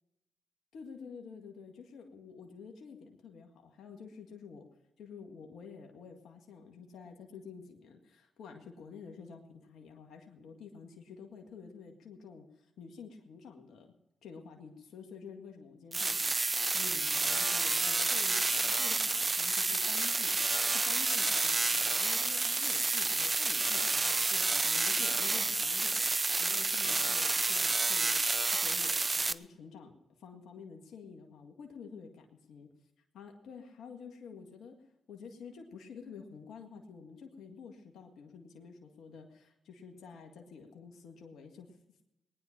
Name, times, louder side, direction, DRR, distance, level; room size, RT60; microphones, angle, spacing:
voice 1, 0.7-4.7 5.0-13.9 14.2-26.1 26.4-28.1 28.5-29.9 30.2-32.7 33.1-34.8 35.1-41.7, left 5 dB, 75° left, 2 dB, 1.9 m, -50 dB
sound 1, 15.9-29.3, right 3 dB, 35° right, 0.7 m, -29 dB
19.5 x 10.0 x 5.9 m, 0.91 s
supercardioid pair, 45°, 0 cm